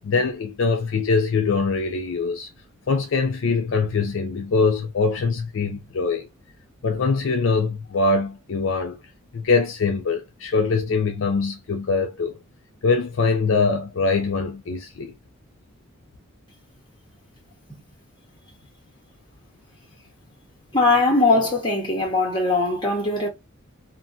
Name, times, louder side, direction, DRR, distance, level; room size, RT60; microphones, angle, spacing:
voice 1, 0.0-2.5 2.9-6.3 6.8-9.0 9.3-12.4 12.8-15.1, left 4 dB, 60° left, 0.4 m, -23 dB
voice 2, 20.7-23.3, left 2 dB, 20° left, 1.1 m, -20 dB
2.5 x 2.4 x 2.6 m
head